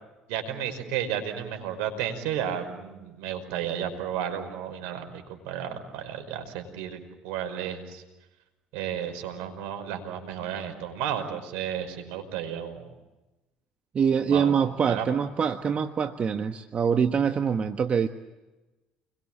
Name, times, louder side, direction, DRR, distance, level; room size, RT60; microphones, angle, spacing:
voice 1, 0.3-8.0 8.7-12.9 14.1-15.1, right 9 dB, 75° right, 7 dB, 5.3 m, -33 dB
voice 2, 13.9-18.1, right 7 dB, 40° right, 8 dB, 1.4 m, -24 dB
30.0 x 22.5 x 7.5 m, 1.1 s
hypercardioid pair, 65°, 3 cm